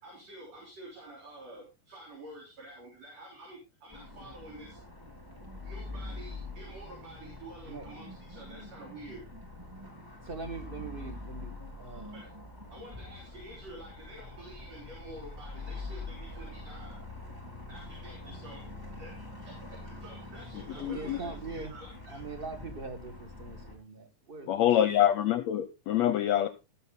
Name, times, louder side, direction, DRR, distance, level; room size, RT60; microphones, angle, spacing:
voice 1, 0.0-4.8 5.6-9.2 12.1-12.3 12.7-17.0 17.7-22.2, right 1 dB, 55° right, 5.0 m, -49 dB
sound 1, 3.9-23.8, left 2 dB, 5° right, 2.6 m, -44 dB
voice 2, 10.2-12.2 20.7-21.7 22.1-25.0, right 4 dB, 20° right, 1.5 m, -42 dB
voice 3, 20.8-21.2 24.5-26.5, left 11 dB, 70° left, 1.8 m, -25 dB
17.5 x 7.2 x 3.9 m
omnidirectional pair, 3.6 m